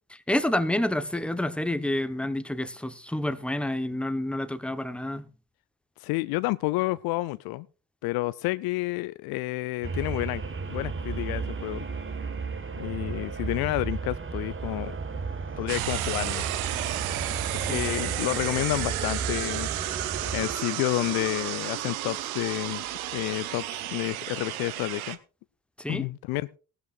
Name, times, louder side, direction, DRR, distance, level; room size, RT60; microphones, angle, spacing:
voice 1, 0.3-5.3 17.6-17.9 25.8-26.0, left 1 dB, 5° left, 1.0 m, -29 dB
voice 2, 6.0-7.7 8.0-10.4 10.7-11.9 12.8-14.9 15.6-16.4 17.7-20.1 20.3-22.8 23.1-25.2 25.9-26.5, left 20 dB, 60° left, 0.5 m, -30 dB
sound 1, 9.8-20.5, right 4 dB, 30° right, 1.4 m, -34 dB
sound 2, 15.7-25.2, right 13 dB, 80° right, 0.8 m, -32 dB
17.5 x 12.5 x 2.5 m
figure-of-eight pair, 40°, 42 cm